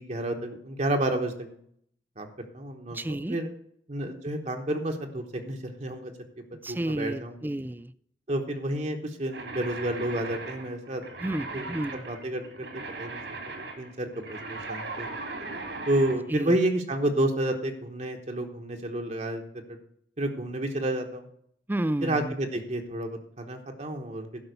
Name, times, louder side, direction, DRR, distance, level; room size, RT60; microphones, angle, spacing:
voice 1, 0.0-1.6 2.2-3.5 3.9-6.1 6.7-7.5 8.3-11.0 11.5-12.7 13.0-13.4 13.8-15.1 15.9-19.4 20.2-21.3 22.0-24.3, right 1 dB, 40° right, 2 dB, 1.1 m, -30 dB
voice 2, 2.9-3.4 6.6-7.9 11.2-12.0 16.3-16.6 21.7-22.3, right 1 dB, 10° right, 16 dB, 0.3 m, -31 dB
sound 1, 9.3-16.2, right 3 dB, 80° right, 2.5 m, -38 dB
12.0 x 5.6 x 6.8 m, 0.68 s
head